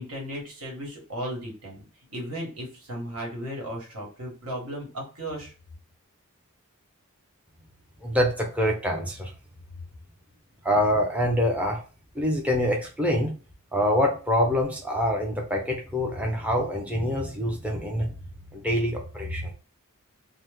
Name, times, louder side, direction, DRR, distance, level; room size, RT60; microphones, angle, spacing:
voice 1, 0.0-1.8 2.1-5.5, equal, 75° right, -1 dB, 1.4 m, -35 dB
voice 2, 8.0-9.3 10.6-11.8 12.1-13.3 13.7-18.1 18.5-19.5, equal, 5° right, 0 dB, 0.5 m, -25 dB
2.9 x 2.1 x 3.3 m, 0.37 s
head